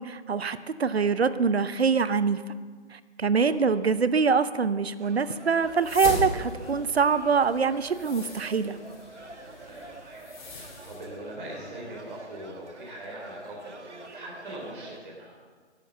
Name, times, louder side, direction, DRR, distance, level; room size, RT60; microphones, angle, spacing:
voice 1, 0.0-2.4 2.9-8.8, right 5 dB, 65° right, 14 dB, 0.8 m, -24 dB
voice 2, 0.9-1.4 3.3-3.8 9.6-15.4, right 1 dB, 45° right, -2 dB, 3.7 m, -42 dB
sound 1, 5.0-15.0, right 3 dB, 85° right, 1.6 m, -47 dB
sound 2, 5.6-11.0, left 2 dB, 45° left, 3.9 m, -38 dB
13.5 x 12.0 x 7.2 m, 1.5 s
figure-of-eight pair, 150°, 34 cm